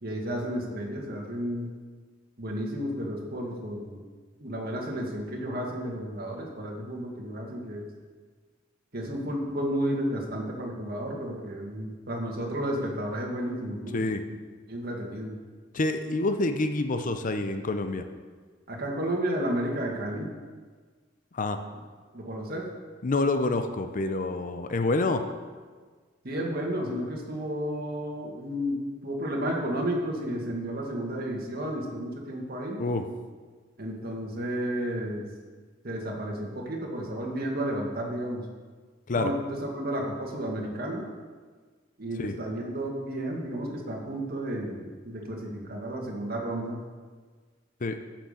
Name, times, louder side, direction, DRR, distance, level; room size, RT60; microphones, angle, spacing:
voice 1, 0.0-1.7 2.4-4.0 4.4-7.8 8.9-14.0 14.3-14.4 14.7-15.4 18.7-20.3 22.1-22.7 26.2-32.8 33.8-35.3 35.8-38.5 39.1-41.1 42.0-46.8, equal, 50° right, 0 dB, 1.8 m, -32 dB
voice 2, 13.9-14.2 15.7-18.1 21.3-21.6 23.0-25.2 32.8-33.1 39.1-39.3 42.2-42.4 47.8-48.0, left 2 dB, 40° left, 7 dB, 0.6 m, -27 dB
10.0 x 6.0 x 7.1 m, 1.5 s
head